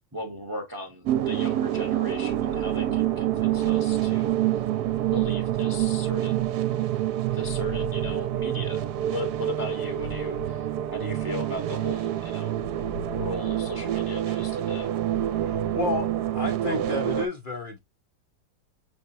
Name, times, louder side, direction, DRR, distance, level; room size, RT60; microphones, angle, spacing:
voice 1, 0.1-4.6 5.1-6.6 7.3-12.6 13.1-14.9, left 1 dB, 20° right, 0.6 m, -37 dB
sound 1, 1.1-17.3, right 12 dB, 70° right, 1.1 m, -27 dB
voice 2, 15.3-17.8, left 3 dB, 50° left, 0.6 m, -31 dB
5.8 x 3.3 x 2.7 m
omnidirectional pair, 1.9 m